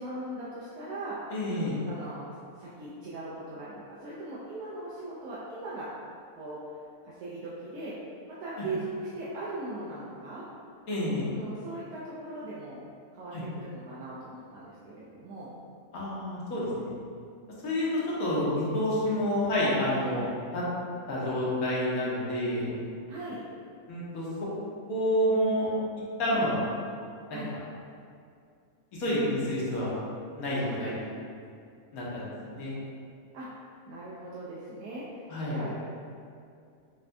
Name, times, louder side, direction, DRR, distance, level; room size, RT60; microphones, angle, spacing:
voice 1, 0.0-1.2 1.9-5.9 6.4-6.6 7.0-7.9 8.3-10.4 11.3-12.8 13.1-15.5 20.0-20.2 23.1-23.4 26.3-26.6 27.3-27.5 30.6-31.2 33.3-33.5 33.9-35.3 35.5-35.7, right 2 dB, 85° right, -8 dB, 1.1 m, -39 dB
voice 2, 1.3-1.8 8.6-8.7 10.9-11.3 13.3-13.4 15.9-16.9 17.6-17.9 18.2-20.3 20.5-20.6 21.1-22.7 23.9-24.3 24.9-25.7 26.2-26.6 27.3-27.6 29.0-29.9 30.4-31.1 31.9-32.7 35.3-35.6, left 1 dB, 75° left, -7 dB, 1.4 m, -29 dB
5.7 x 2.2 x 2.5 m, 2.4 s
omnidirectional pair, 1.6 m